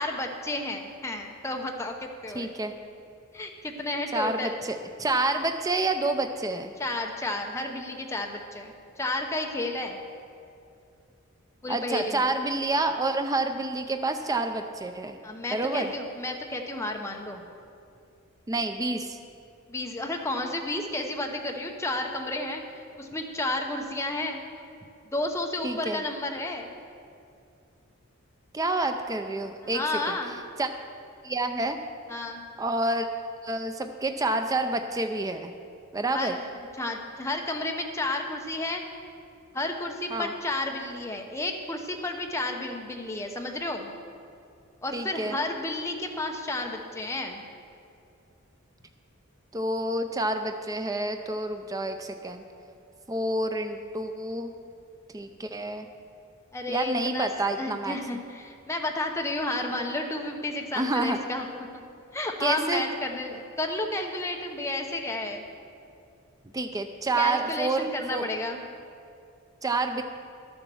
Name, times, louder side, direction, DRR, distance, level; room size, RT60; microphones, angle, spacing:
voice 1, 0.0-2.5 3.3-4.6 6.8-10.0 11.6-12.3 15.2-17.4 19.7-22.6 23.0-24.4 25.1-26.7 29.7-30.3 32.1-32.4 36.1-36.4 36.8-38.8 39.5-43.9 44.8-47.4 56.5-57.3 57.5-61.5 62.1-65.4 67.2-68.6, left 2 dB, 15° left, 2 dB, 0.9 m, -32 dB
voice 2, 2.3-2.7 4.1-6.7 11.7-15.2 15.5-15.9 18.5-19.2 25.6-26.0 28.5-30.2 30.6-30.7 31.2-31.8 32.6-33.1 33.4-35.5 35.9-36.4 40.1-40.3 44.9-45.4 49.5-52.4 53.1-54.5 55.1-55.9 56.7-58.0 60.7-61.2 62.4-62.8 66.5-68.3 69.6-70.0, right 2 dB, 15° right, 6 dB, 0.5 m, -28 dB
11.5 x 7.0 x 7.0 m, 2.5 s
head